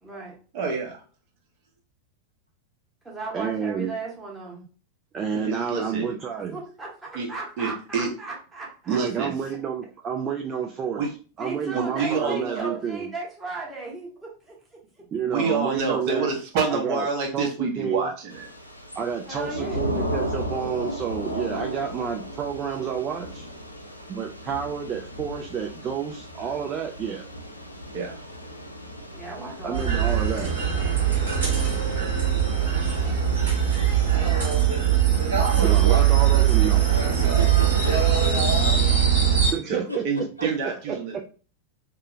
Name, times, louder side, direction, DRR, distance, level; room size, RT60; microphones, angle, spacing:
voice 1, 0.0-0.4 3.0-4.7 6.5-9.0 11.4-14.6 15.0-15.1 19.3-19.9 29.1-30.1 32.4-33.6, right 3 dB, 10° right, -4 dB, 1.0 m, -36 dB
voice 2, 0.5-1.0 5.3-6.1 7.1-7.3 7.6-8.1 8.9-9.3 11.0-11.1 11.7-12.8 15.2-18.5 27.9-28.2 39.7-41.3, right 4 dB, 45° right, 1 dB, 0.7 m, -27 dB
voice 3, 3.3-3.9 5.1-6.6 8.9-11.0 11.4-13.1 15.1-16.3 16.7-17.1 17.3-18.1 19.0-23.5 24.1-27.3 29.6-30.5 35.6-36.9 39.5-40.0 40.9-41.0, right 7 dB, 25° right, 2 dB, 0.3 m, -29 dB
Thunder / Rain, 18.3-34.3, equal, 85° left, 0.3 m, -36 dB
sound 1, 29.7-39.5, right 9 dB, 65° right, 1.0 m, -21 dB
voice 4, 37.2-38.4 39.9-40.5, right 1 dB, 90° right, 1 dB, 0.4 m, -36 dB
2.7 x 2.0 x 2.5 m, 0.38 s
figure-of-eight pair, 90°, 0 cm